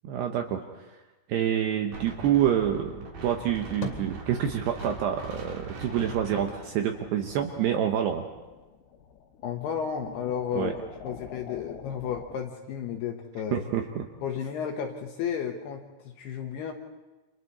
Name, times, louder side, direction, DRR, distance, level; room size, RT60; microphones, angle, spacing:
voice 1, 0.0-0.6 1.3-2.9 3.2-8.2 10.6-10.7 13.5-14.0, right 10 dB, 75° right, 4 dB, 2.6 m, -27 dB
Wind, 1.9-7.4, right 3 dB, 45° right, 3.7 m, -41 dB
sound 1, 3.4-4.9 5.2-7.5 7.9-8.8, left 4 dB, 40° left, 2.8 m, -43 dB
sound 2, 5.8-12.4, left 7 dB, 85° left, 4.2 m, -48 dB
voice 2, 9.4-10.8 11.0-13.6 14.2-15.8 16.2-16.7, left 7 dB, 70° left, 3 dB, 2.7 m, -32 dB
30.0 x 27.0 x 4.2 m, 1.1 s
omnidirectional pair, 5.9 m